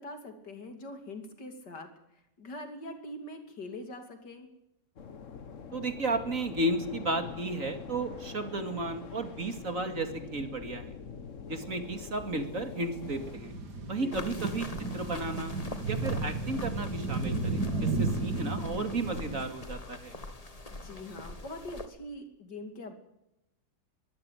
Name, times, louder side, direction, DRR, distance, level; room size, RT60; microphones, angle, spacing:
voice 1, 0.0-1.9 2.4-4.5 13.9-14.5 20.7-22.9, left 1 dB, 75° left, 6 dB, 3.4 m, -43 dB
sound 1, 5.0-13.4, left 6 dB, 50° left, 1.4 m, -44 dB
voice 2, 5.7-10.9 11.5-13.5 13.9-14.7 14.9-15.5 15.9-20.1, right 2 dB, 50° right, 8 dB, 2.7 m, -33 dB
sound 2, 13.0-19.4, right 3 dB, 65° right, 3.2 m, -33 dB
sound 3, 14.1-21.9, left 2 dB, 20° left, 1.6 m, -44 dB
23.0 x 14.5 x 9.2 m, 0.87 s
omnidirectional pair, 1.9 m